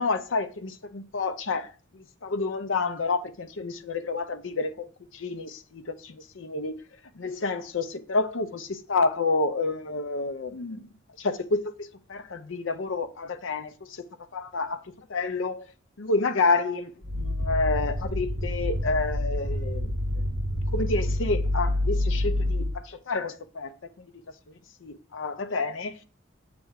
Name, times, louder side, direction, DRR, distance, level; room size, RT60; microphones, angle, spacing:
voice 1, 0.0-4.9 5.1-10.9 11.2-14.1 14.3-15.7 16.0-19.9 20.7-23.7 24.0-24.1 24.5-24.6 24.8-26.0, left 3 dB, 80° left, 0.7 m, -29 dB
sound 1, 17.0-22.8, left 1 dB, 70° right, 1.6 m, -27 dB
7.6 x 3.5 x 6.4 m
head